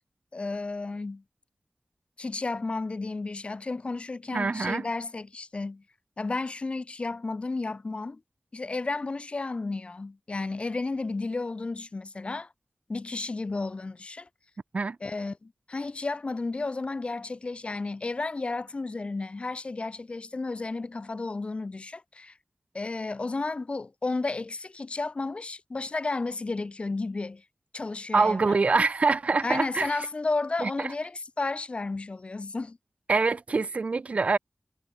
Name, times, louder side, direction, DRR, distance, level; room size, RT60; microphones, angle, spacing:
voice 1, 0.3-1.2 2.2-5.8 6.2-8.2 8.5-12.5 12.9-14.3 15.0-22.4 22.7-27.4 27.7-28.6 29.4-32.8, left 3 dB, 55° left, 5.3 m, -32 dB
voice 2, 4.3-4.8 14.7-15.0 28.1-29.9 30.6-30.9 33.1-34.4, right 4 dB, 75° right, 2.0 m, -25 dB
wide cardioid pair, 85°, 2 cm